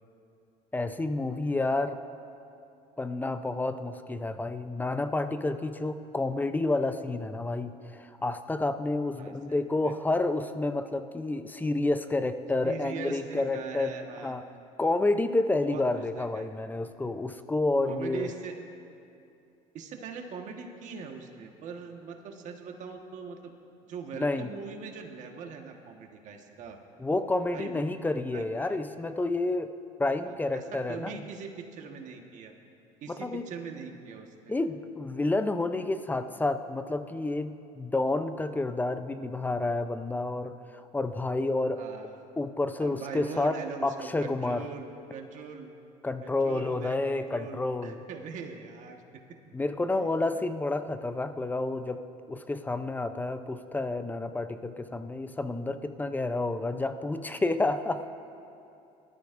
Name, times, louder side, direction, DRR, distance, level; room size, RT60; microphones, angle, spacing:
voice 1, 0.7-2.0 3.0-13.9 14.2-14.4 14.8-18.3 24.1-24.5 27.0-29.7 30.0-31.2 33.1-33.4 34.5-40.5 40.9-41.8 42.4-43.6 43.8-44.7 46.0-48.1 49.5-52.0 52.3-58.1, left 2 dB, 10° left, 10 dB, 0.6 m, -29 dB
voice 2, 12.6-14.3 15.6-16.4 17.8-18.5 19.7-23.5 23.9-26.8 27.5-27.8 28.3-28.8 30.2-32.5 33.0-34.5 41.8-42.3 42.8-45.7 46.2-49.0 49.9-50.1, right 5 dB, 55° right, 3 dB, 1.4 m, -41 dB
20.0 x 13.0 x 2.6 m, 2.7 s
supercardioid pair, 100°, 15 cm